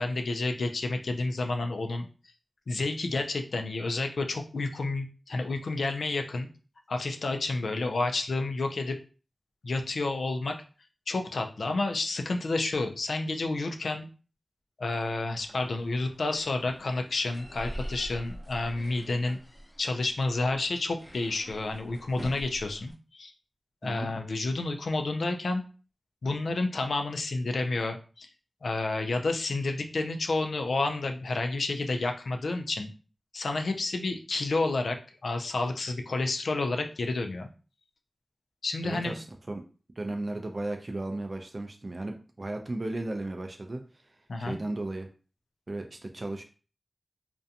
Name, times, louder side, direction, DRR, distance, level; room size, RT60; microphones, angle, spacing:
voice 1, 0.0-2.1 2.7-6.5 6.9-9.0 9.6-10.5 11.1-14.1 14.8-19.4 19.8-23.3 23.8-25.6 26.2-28.3 28.6-32.9 33.3-35.0 35.2-37.5 38.6-39.2 44.3-44.6, left 2 dB, 85° left, 5 dB, 0.3 m, -30 dB
sound 1, 15.3-22.9, equal, 10° left, 0.6 m, -44 dB
voice 2, 38.8-39.6 40.0-43.8 44.4-45.1 45.7-46.4, right 2 dB, 45° right, 4 dB, 0.3 m, -35 dB
2.5 x 2.2 x 2.7 m, 0.36 s
wide cardioid pair, 55°, 0 cm